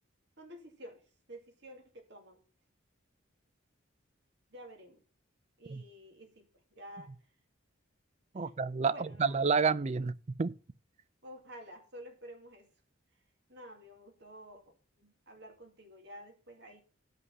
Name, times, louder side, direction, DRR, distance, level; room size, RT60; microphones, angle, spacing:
voice 1, 0.4-1.0 1.3-2.4 4.5-5.0 5.6-7.1 8.3-8.6 8.9-9.4 11.2-12.7 13.5-16.8, equal, 55° right, 2.3 m, -51 dB
voice 2, 8.3-10.5, right 5 dB, 30° right, 0.4 m, -30 dB
11.0 x 5.5 x 5.5 m
head